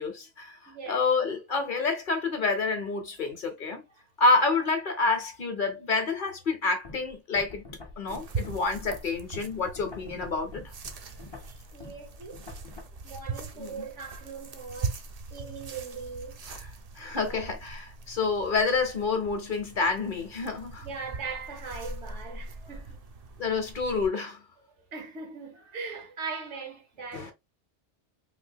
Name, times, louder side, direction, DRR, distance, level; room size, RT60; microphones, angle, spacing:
voice 1, 0.0-3.8 4.2-7.6 8.0-10.6 13.6-13.8 16.5-16.7 17.0-20.9 23.4-24.4 27.1-27.3, left 4 dB, 50° left, 0.8 m, -28 dB
voice 2, 0.7-1.0 11.4-12.4 13.0-15.0 15.3-16.4 17.1-17.6 20.8-23.0 24.9-27.3, right 5 dB, 80° right, 1.3 m, -40 dB
sound 1, 6.8-12.8, left 3 dB, 30° left, 0.5 m, -46 dB
sound 2, 8.1-24.1, right 4 dB, 50° right, 0.5 m, -41 dB
3.4 x 2.6 x 2.7 m
omnidirectional pair, 1.2 m